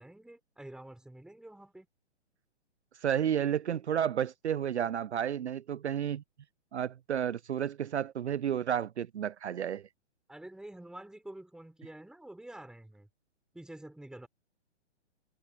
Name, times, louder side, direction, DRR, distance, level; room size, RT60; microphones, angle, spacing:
voice 1, 0.0-1.9 10.3-13.1 13.5-14.3, right 1 dB, ahead, 4.2 m, -48 dB
voice 2, 3.0-6.2 6.7-9.8, right 9 dB, 70° right, 0.5 m, -31 dB
figure-of-eight pair, 120°, 35 cm